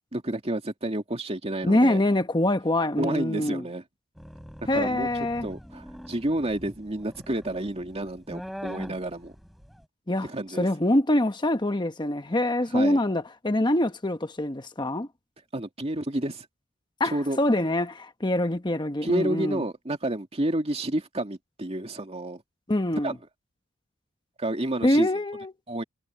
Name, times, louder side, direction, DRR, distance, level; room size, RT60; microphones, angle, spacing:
voice 1, 0.1-2.0 3.0-3.8 4.6-5.1 5.4-9.3 10.2-10.7 12.7-13.0 15.5-16.5 17.0-17.4 19.0-22.4 23.0-23.2 24.4-25.1 25.7-25.8, right 1 dB, 30° right, 2.2 m, -30 dB
voice 2, 1.6-3.6 4.7-5.5 10.1-10.3 10.6-15.1 17.0-19.6 22.7-23.1 24.8-25.5, left 1 dB, 20° left, 1.1 m, -24 dB
sound 1, 4.2-9.8, equal, ahead, 5.4 m, -42 dB
head